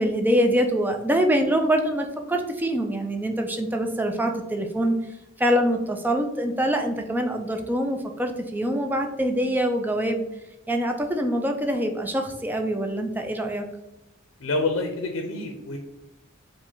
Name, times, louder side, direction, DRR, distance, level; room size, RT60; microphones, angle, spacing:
voice 1, 0.0-4.9 5.4-10.2 10.7-13.6, equal, 10° right, 4 dB, 0.4 m, -24 dB
voice 2, 14.4-15.8, left 2 dB, 80° left, 4 dB, 0.5 m, -27 dB
4.8 x 2.1 x 3.7 m, 0.94 s
head